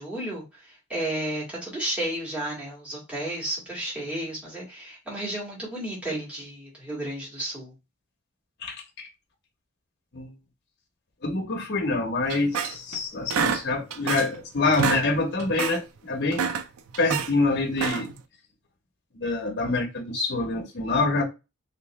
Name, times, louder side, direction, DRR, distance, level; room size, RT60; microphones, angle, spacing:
voice 1, 0.0-7.7, right 1 dB, 5° right, 1.8 m, -32 dB
voice 2, 11.2-16.4 17.0-18.1 19.2-21.2, left 3 dB, 50° left, 0.9 m, -26 dB
sound 1, 12.3-13.0 13.3-14.4 14.7-15.1 15.4-15.8 16.2-17.3 17.7-18.2, right 6 dB, 90° right, 0.5 m, -28 dB
3.3 x 3.0 x 3.0 m
head